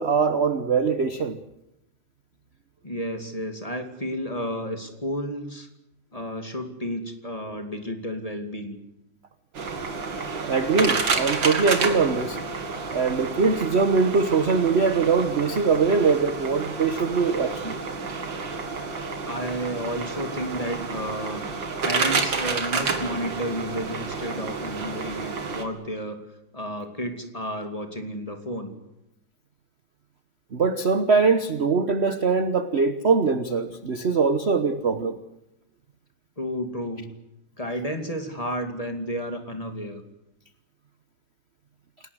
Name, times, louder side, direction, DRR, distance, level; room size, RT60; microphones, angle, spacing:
voice 1, 0.0-1.4 10.3-12.4 12.9-17.8 30.5-35.2, right 5 dB, 40° right, 10 dB, 1.1 m, -22 dB
voice 2, 2.8-5.7 6.1-8.8 19.2-21.4 21.8-26.2 26.5-28.7 36.4-37.1 37.6-40.0, equal, 15° left, 5 dB, 2.4 m, -31 dB
sound 1, 9.5-25.6, right 4 dB, 65° right, 2.8 m, -30 dB
29.0 x 18.0 x 8.1 m, 0.89 s
omnidirectional pair, 2.2 m